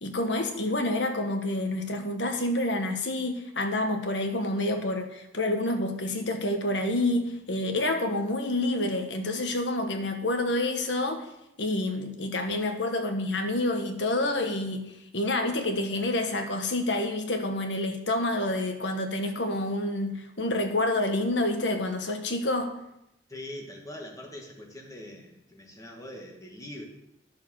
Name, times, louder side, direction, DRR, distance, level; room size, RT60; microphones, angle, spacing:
voice 1, 0.0-11.3 11.6-22.7, left 1 dB, 80° left, 5 dB, 1.5 m, -28 dB
voice 2, 23.3-26.8, left 1 dB, 20° left, 1 dB, 1.9 m, -42 dB
10.5 x 6.8 x 6.5 m, 0.84 s
head